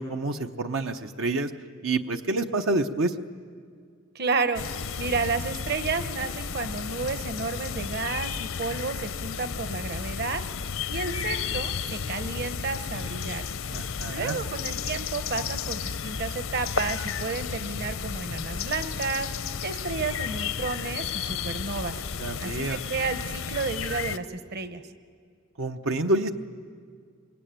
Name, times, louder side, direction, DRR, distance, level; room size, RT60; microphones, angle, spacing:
voice 1, 0.0-1.5 1.8-3.1 13.7-14.4 22.2-22.8 25.6-26.3, right 2 dB, 90° right, 6 dB, 0.9 m, -28 dB
voice 2, 4.1-4.6 5.0-10.4 10.9-13.4 14.1-19.3 19.6-22.0 22.4-24.8, right 4 dB, 55° right, 10 dB, 1.1 m, -31 dB
sound 1, 4.5-24.2, left 6 dB, 90° left, 0.8 m, -33 dB
26.0 x 22.5 x 9.0 m, 2.1 s
head